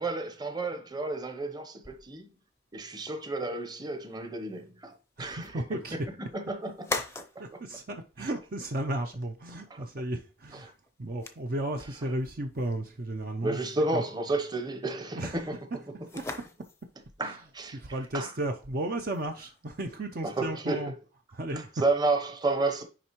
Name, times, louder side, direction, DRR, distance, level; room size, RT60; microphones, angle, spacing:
voice 1, 0.0-2.3 2.7-5.6 5.9-6.9 8.2-8.3 9.7-9.8 10.6-10.7 13.4-15.6 17.2-17.8 18.1-18.3 20.2-20.9 21.8-22.8, right 2 dB, 20° right, 0.8 m, -31 dB
sound 1, 1.8-20.3, left 2 dB, 15° left, 0.5 m, -45 dB
voice 2, 5.2-6.0 7.4-10.7 11.0-13.6 13.9-14.0 15.1-15.4 16.2-16.3 17.2-17.3 17.7-20.9 21.3-21.7, right 1 dB, 50° right, 0.6 m, -34 dB
10.0 x 3.3 x 3.0 m
head